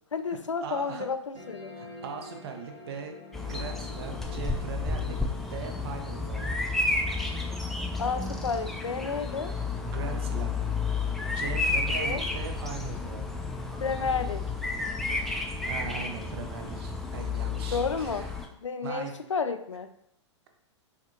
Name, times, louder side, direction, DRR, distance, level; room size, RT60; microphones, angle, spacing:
voice 1, 0.1-1.7 8.0-9.5 12.0-12.2 13.8-14.5 17.7-18.3 18.6-19.9, left 5 dB, 85° left, 9 dB, 0.4 m, -31 dB
voice 2, 0.6-1.1 1.8-3.1 3.5-5.2 5.5-6.4 9.8-10.5 11.3-13.3 15.6-18.3 18.8-19.2, right 6 dB, 55° right, 5 dB, 0.8 m, -39 dB
sound 1, 1.3-12.3, left 2 dB, 35° right, 1.3 m, -50 dB
Bird vocalization bird call bird song, 3.3-18.5, left 3 dB, ahead, 0.5 m, -31 dB
5.6 x 2.4 x 3.0 m, 0.74 s
figure-of-eight pair, 100°, 15 cm